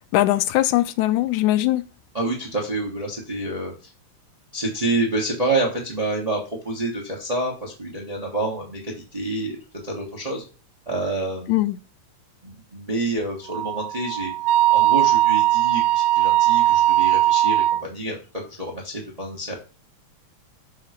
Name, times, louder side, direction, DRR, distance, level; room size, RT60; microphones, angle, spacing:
voice 1, 0.1-1.9 11.5-11.8, left 15 dB, 85° left, 2.0 m, -20 dB
voice 2, 2.1-3.9 4.5-9.6 9.8-10.4 10.9-11.7 12.4-14.3 14.7-18.2 18.6-19.5, right 2 dB, 25° right, 0.9 m, -28 dB
Wind instrument woodwind instrument, 13.5-17.8, right 15 dB, 90° right, 2.0 m, -19 dB
7.3 x 3.1 x 5.0 m
omnidirectional pair, 3.3 m